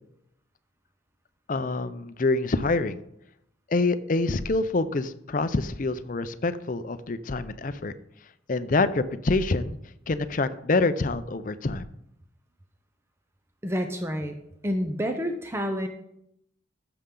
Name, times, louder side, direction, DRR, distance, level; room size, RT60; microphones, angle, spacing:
voice 1, 1.5-3.0 3.7-7.9 8.5-9.8 10.1-11.9, left 3 dB, 40° left, 12 dB, 0.5 m, -26 dB
voice 2, 13.6-14.4 14.6-15.9, equal, 15° right, 5 dB, 0.6 m, -28 dB
14.0 x 6.9 x 3.8 m, 0.77 s
head